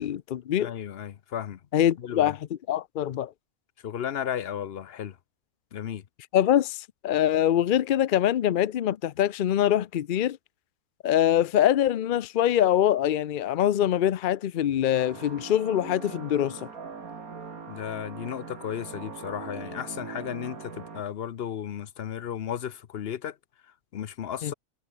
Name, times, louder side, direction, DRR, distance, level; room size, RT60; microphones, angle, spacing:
voice 1, 0.0-0.7 1.7-2.4 2.7-3.3 6.3-10.4 11.0-16.7 24.4-24.5, left 11 dB, 70° left, 0.4 m, -24 dB
voice 2, 0.6-1.6 2.0-2.4 3.8-5.2 5.7-6.1 17.7-23.4 23.6-24.5, left 9 dB, 50° left, 0.8 m, -34 dB
sound 1, 14.9-21.0, right 5 dB, 80° right, 2.7 m, -41 dB
omnidirectional pair, 1.5 m